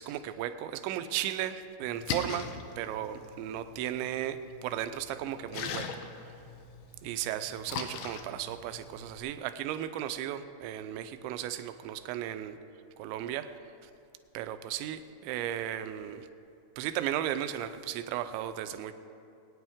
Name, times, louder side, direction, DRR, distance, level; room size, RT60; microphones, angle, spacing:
voice 1, 0.0-2.5 2.8-5.9 7.0-12.6 13.0-13.5 13.8-13.9 14.3-16.3 16.8-18.9, right 11 dB, 85° right, 10 dB, 2.8 m, -35 dB
Splash splatter, 1.8-9.2, left 6 dB, 80° left, 2.3 m, -41 dB
22.0 x 9.3 x 3.6 m, 2.6 s
omnidirectional pair, 5.3 m